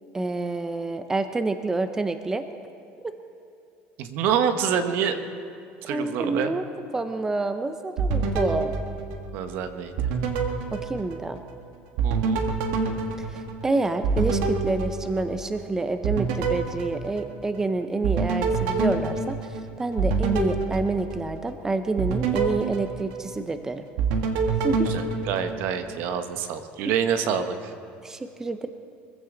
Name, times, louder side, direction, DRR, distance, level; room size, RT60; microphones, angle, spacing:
voice 1, 0.1-2.5 3.0-3.1 5.9-6.6 6.9-8.7 10.7-11.4 13.2-23.8 24.6-24.9 28.0-28.7, right 3 dB, 10° right, 9 dB, 0.6 m, -28 dB
voice 2, 4.0-5.2 5.8-6.5 9.3-9.9 12.0-12.4 24.9-27.7, right 8 dB, 65° right, 8 dB, 1.2 m, -27 dB
sound 1, 8.0-9.6 10.0-11.6 12.0-15.6 16.0-17.6 18.0-21.5 22.0-23.6 24.0-25.9, right 4 dB, 80° right, 1.7 m, -27 dB
24.0 x 15.5 x 3.9 m, 2.6 s
cardioid pair, 135°, 4 cm